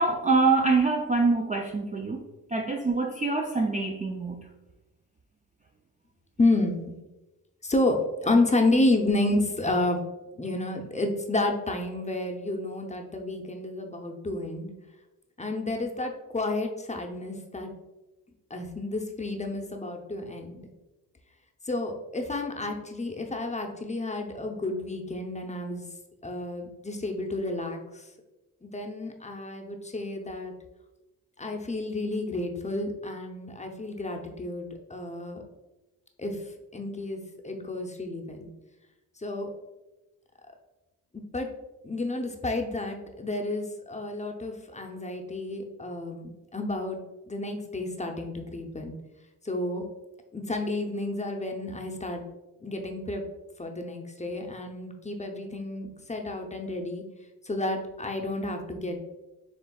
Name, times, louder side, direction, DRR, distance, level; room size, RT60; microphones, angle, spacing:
voice 1, 0.0-2.2 2.5-4.5, right 3 dB, 20° right, 2 dB, 0.3 m, -25 dB
voice 2, 6.4-6.9 7.6-10.0 10.4-14.7 15.4-17.7 18.5-20.7 21.7-25.9 26.2-28.0 28.6-30.5 31.4-35.4 36.2-36.4 36.7-38.5 39.2-39.5 41.1-41.5 41.8-47.0 47.3-49.0 49.4-49.8 50.3-52.2 52.6-53.2 53.6-57.0 57.4-59.1, left 2 dB, 15° left, 2 dB, 0.6 m, -30 dB
7.0 x 3.2 x 2.3 m, 1.1 s
cardioid pair, 85°, 40 cm